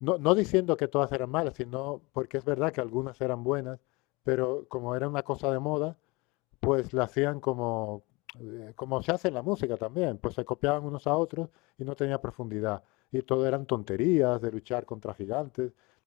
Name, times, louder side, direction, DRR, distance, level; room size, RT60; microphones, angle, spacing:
voice 1, 0.0-3.8 4.3-5.9 6.6-8.0 8.3-11.5 11.8-12.8 13.1-15.7, left 26 dB, 55° left, 0.5 m, -29 dB
supercardioid pair, 135°, 0 cm